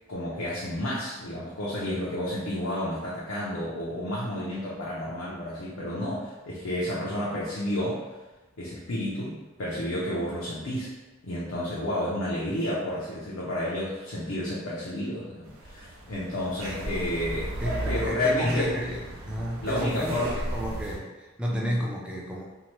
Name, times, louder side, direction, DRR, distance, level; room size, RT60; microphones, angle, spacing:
voice 1, 0.1-8.0 8.6-10.9 11.2-18.7 19.6-20.4 21.5-21.8, left 1 dB, 85° left, -7 dB, 0.6 m, -31 dB
sound 1, 15.5-21.0, right 1 dB, 90° right, 0.5 m, -35 dB
voice 2, 17.6-22.4, equal, 5° right, -3 dB, 0.4 m, -31 dB
2.8 x 2.1 x 3.0 m, 1.2 s
head